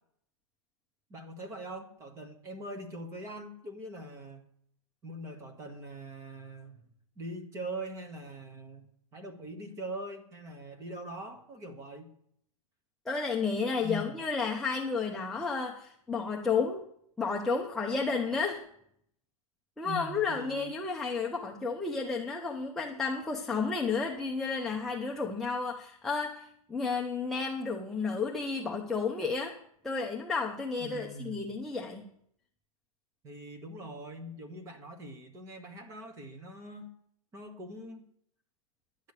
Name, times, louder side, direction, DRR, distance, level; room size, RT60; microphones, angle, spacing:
voice 1, 1.1-4.4 5.0-8.9 9.1-12.1 13.8-14.1 19.8-20.8 30.8-31.6 33.2-36.9 37.3-38.1, right 1 dB, 15° right, 7 dB, 1.2 m, -42 dB
voice 2, 13.1-16.8 17.2-18.6 19.8-29.5 29.8-32.0, left 4 dB, ahead, -1 dB, 0.5 m, -32 dB
11.0 x 8.4 x 6.5 m, 0.69 s
hypercardioid pair, 165°, 19 cm